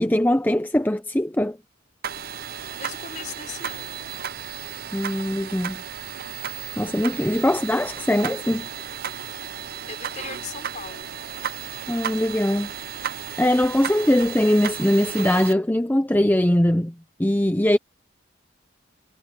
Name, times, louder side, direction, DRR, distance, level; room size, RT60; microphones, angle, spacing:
voice 1, 0.0-1.6 4.9-5.8 6.8-8.7 11.9-12.7 13.4-16.9 17.2-17.8, left 1 dB, 10° left, 0.7 m, -21 dB
sound 1, 2.0-15.5, right 8 dB, 50° right, 0.7 m, -34 dB
voice 2, 2.8-4.0 7.2-7.5 9.5-11.2, left 6 dB, 40° left, 4.9 m, -39 dB
head